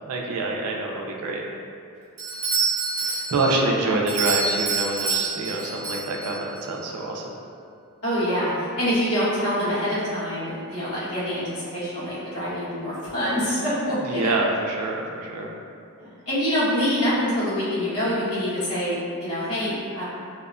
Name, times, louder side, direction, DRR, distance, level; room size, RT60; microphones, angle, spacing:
voice 1, 0.0-1.4 2.9-7.2 14.1-15.5, right 2 dB, 85° right, 0 dB, 0.4 m, -26 dB
Doorbell, 2.2-6.6, right 4 dB, 35° right, 0.7 m, -27 dB
voice 2, 3.5-4.0 8.0-14.4 16.0-20.0, equal, 85° left, -11 dB, 1.1 m, -26 dB
2.7 x 2.1 x 2.4 m, 2.4 s
head